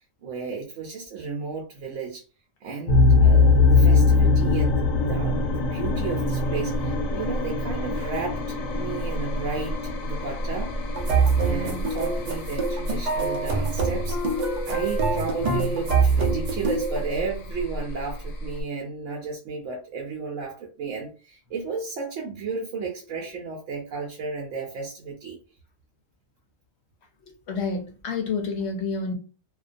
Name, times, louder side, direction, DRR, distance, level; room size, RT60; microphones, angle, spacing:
voice 1, 0.2-2.2 2.6-10.7 11.3-25.4, right 4 dB, 75° right, 0.9 m, -33 dB
sound 1, 2.9-18.6, left 3 dB, 85° left, 1.0 m, -23 dB
sound 2, 11.0-17.0, right 4 dB, 55° right, 0.4 m, -25 dB
voice 2, 11.5-11.8 27.5-29.1, left 4 dB, 65° left, 0.8 m, -29 dB
2.4 x 2.2 x 2.4 m
omnidirectional pair, 1.4 m